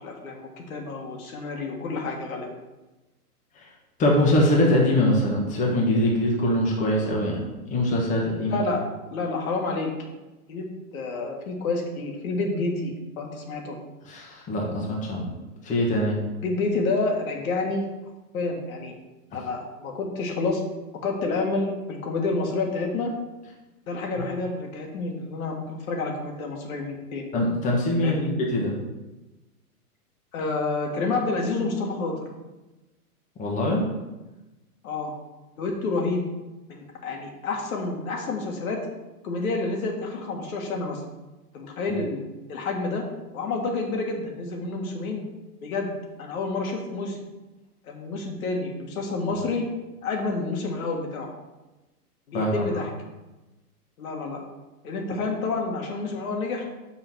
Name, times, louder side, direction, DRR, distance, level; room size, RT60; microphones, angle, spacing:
voice 1, 0.0-2.5 8.5-8.8 9.1-9.9 10.5-10.7 10.9-13.7 16.4-17.8 18.3-18.9 19.3-20.6 21.0-23.1 23.9-27.3 28.0-28.3 30.3-32.1 34.8-35.1 35.6-36.2 36.7-38.8 39.2-41.0 41.5-42.2 42.5-43.0 43.3-45.2 45.6-45.9 46.2-47.2 47.8-49.6 50.0-51.3 52.3-52.9 54.0-54.4 54.8-56.6, left 3 dB, 60° left, 1 dB, 1.6 m, -29 dB
voice 2, 4.0-8.6 14.1-15.3 15.6-16.2 27.3-28.7 33.4-33.8 52.3-52.7, left 1 dB, 15° left, -3 dB, 1.2 m, -23 dB
5.8 x 3.9 x 6.0 m, 1.1 s
hypercardioid pair, 135°, 47 cm